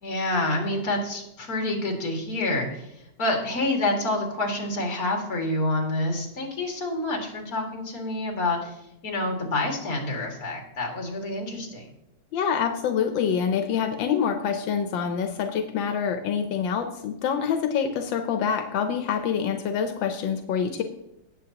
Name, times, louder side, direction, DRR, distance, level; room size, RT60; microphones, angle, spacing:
voice 1, 0.0-2.9 3.2-11.9, left 2 dB, 50° left, 1 dB, 2.6 m, -28 dB
voice 2, 12.3-20.8, left 7 dB, 90° left, 6 dB, 1.5 m, -26 dB
17.5 x 7.5 x 2.9 m, 0.84 s
omnidirectional pair, 2.0 m